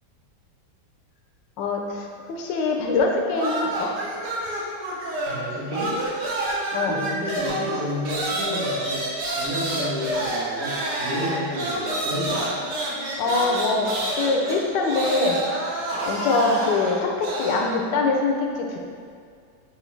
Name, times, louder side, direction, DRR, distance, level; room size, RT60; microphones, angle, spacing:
voice 1, 1.6-3.9 6.7-6.9 13.2-13.9 14.2-15.4 16.0-18.8, left 3 dB, 80° left, 1 dB, 1.2 m, -23 dB
sound 1, 3.3-5.5 5.7-17.7, right 1 dB, 75° right, 1.3 m, -28 dB
voice 2, 5.3-6.0 6.8-9.1 9.4-12.6, equal, 50° right, -9 dB, 1.2 m, -30 dB
6.2 x 2.6 x 3.1 m, 2.2 s
omnidirectional pair, 1.9 m